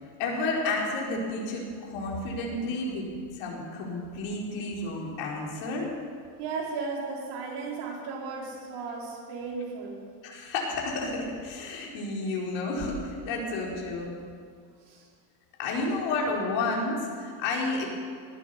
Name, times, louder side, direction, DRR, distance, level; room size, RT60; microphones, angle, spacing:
voice 1, 0.2-3.1 3.3-5.9 10.2-14.1 15.6-17.9, left 2 dB, 60° left, -2 dB, 4.6 m, -31 dB
voice 2, 6.4-10.0 13.7-13.8 14.8-15.1, right 4 dB, 55° right, -3 dB, 5.1 m, -35 dB
19.0 x 10.5 x 7.0 m, 2.1 s
supercardioid pair, 120°, 49 cm